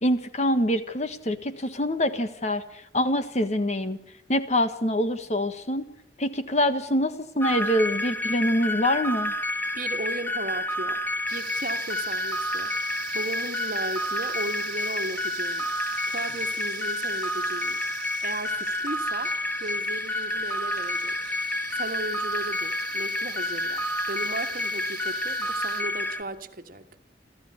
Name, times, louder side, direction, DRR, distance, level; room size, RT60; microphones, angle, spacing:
voice 1, 0.0-2.6 2.9-4.0 4.3-5.8 6.2-9.3, left 1 dB, 40° left, 1.5 m, -25 dB
sound 1, 7.4-26.2, left 1 dB, 10° left, 1.6 m, -29 dB
voice 2, 9.7-11.0 11.3-12.7 13.1-15.7 16.1-17.8 18.2-19.3 19.6-21.2 21.7-26.9, right 2 dB, 50° right, 1.6 m, -36 dB
sound 2, 11.3-25.8, right 6 dB, 25° right, 2.4 m, -43 dB
28.5 x 14.5 x 9.8 m
head